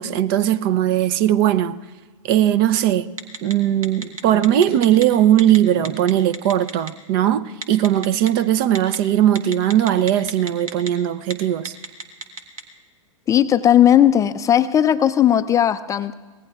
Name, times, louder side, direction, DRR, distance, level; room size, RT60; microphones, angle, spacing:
voice 1, 0.0-1.8 2.2-3.2 3.4-11.7, right 11 dB, 45° right, 0.6 m, -19 dB
Telephone, 3.2-3.5 3.8-5.0 5.4-5.6 5.8-6.9 7.6-8.3 8.8-9.0 9.4-10.9 11.2-11.3 11.7-12.6, right 3 dB, 90° right, 1.5 m, -31 dB
voice 2, 13.3-16.1, left 10 dB, 20° left, 0.4 m, -16 dB
24.5 x 19.0 x 2.4 m
hypercardioid pair, 110°, 17 cm